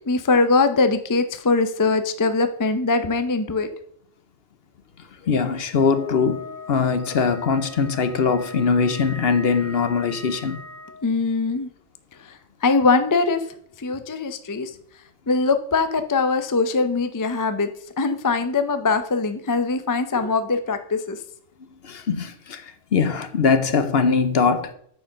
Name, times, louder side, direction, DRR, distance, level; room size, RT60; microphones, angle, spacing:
voice 1, 0.1-3.7 11.0-11.7 12.6-13.4 13.8-14.7 15.3-17.7 18.0-21.2, left 3 dB, 30° left, 0.3 m, -21 dB
voice 2, 5.2-10.6 21.8-24.7, left 5 dB, 55° left, 0.9 m, -21 dB
Wind instrument woodwind instrument, 5.7-11.0, left 2 dB, 5° left, 3.5 m, -40 dB
9.3 x 4.7 x 6.3 m
omnidirectional pair, 1.3 m